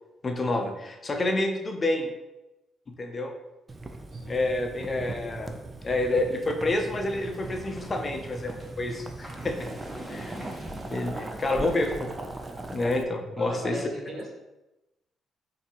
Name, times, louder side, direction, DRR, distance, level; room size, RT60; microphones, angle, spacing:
voice 1, 0.2-2.1 3.0-3.3 4.3-5.5 5.8-9.6 10.1-10.4 10.9-12.1 12.7-13.8, left 2 dB, 35° left, 4 dB, 0.5 m, -28 dB
Boiling, 3.7-13.0, right 2 dB, 25° right, 0.4 m, -40 dB
voice 2, 4.1-4.5 10.9-12.0 13.3-14.3, equal, 55° right, -1 dB, 1.0 m, -39 dB
sound 1, 6.7-12.0, equal, 5° right, 0.9 m, -43 dB
4.1 x 2.6 x 2.9 m, 0.97 s
cardioid pair, 90°, 0 cm